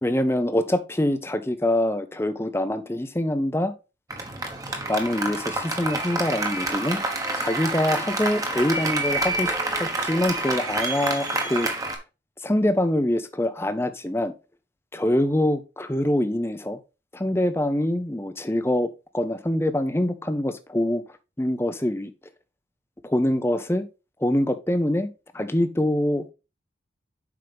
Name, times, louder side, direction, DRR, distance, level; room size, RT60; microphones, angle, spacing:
voice 1, 0.0-3.7 4.9-7.0 7.3-9.5 9.8-11.7 12.4-14.3 14.9-16.8 17.1-22.1 23.0-23.9 24.2-26.3, left 1 dB, 15° left, 10 dB, 0.6 m, -24 dB
Applause, 4.1-12.0, right 2 dB, 20° right, 1.2 m, -28 dB
7.7 x 5.4 x 3.4 m, 0.29 s
head